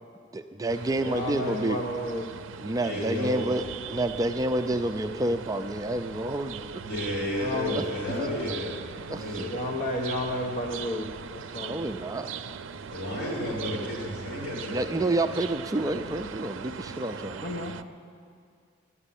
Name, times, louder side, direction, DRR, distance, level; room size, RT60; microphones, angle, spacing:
voice 1, 0.3-1.8 2.6-6.8 7.7-8.3 9.1-9.4 11.6-12.3 14.7-17.5, right 1 dB, 20° right, 7 dB, 0.4 m, -29 dB
sound 1, 0.7-17.8, right 6 dB, 90° right, 0.5 m, -40 dB
voice 2, 1.1-2.3 7.4-7.7 9.5-11.8 17.4-17.7, left 1 dB, 40° left, 1 dB, 0.9 m, -32 dB
voice 3, 2.8-3.5 6.8-9.7 12.7-15.0, left 1 dB, 60° left, -6 dB, 4.6 m, -32 dB
11.0 x 9.7 x 9.9 m, 2.3 s
head